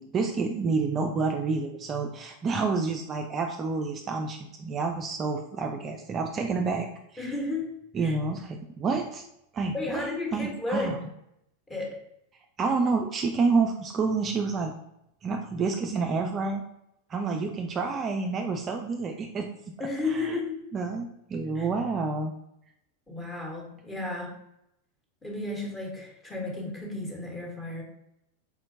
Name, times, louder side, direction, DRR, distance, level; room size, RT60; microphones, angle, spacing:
voice 1, 0.0-6.9 7.1-7.2 7.9-9.2 9.5-10.1 10.3-11.0 12.6-14.7 15.2-16.6 17.1-19.5 20.1-20.4 20.7-22.3, right 4 dB, 25° right, 3 dB, 0.4 m, -28 dB
voice 2, 7.2-7.7 8.0-8.2 9.7-11.0 11.7-12.0 19.8-20.6 21.5-21.7 23.1-24.3 25.2-27.8, left 3 dB, 15° left, -1 dB, 1.3 m, -33 dB
4.3 x 4.2 x 2.7 m, 0.79 s
figure-of-eight pair, 90°, 0 cm